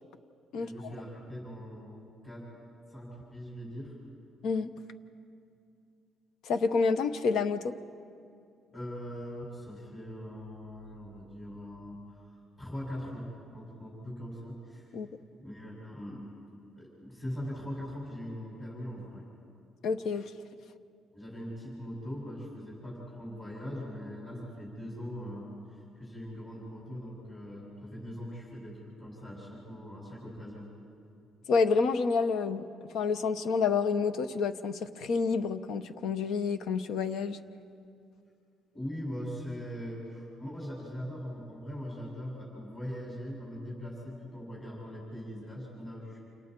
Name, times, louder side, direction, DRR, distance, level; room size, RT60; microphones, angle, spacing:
voice 1, 0.5-2.4 2.9-4.0 8.7-14.9 15.4-16.3 16.8-19.2 21.1-30.7 38.7-46.2, equal, 20° left, -5 dB, 6.4 m, -41 dB
voice 2, 6.4-7.8 14.9-15.1 19.8-20.3 31.5-32.7 32.9-37.4, left 5 dB, 65° left, 11 dB, 0.9 m, -28 dB
29.0 x 27.5 x 4.6 m, 2.5 s
cardioid pair, 160°, 0 cm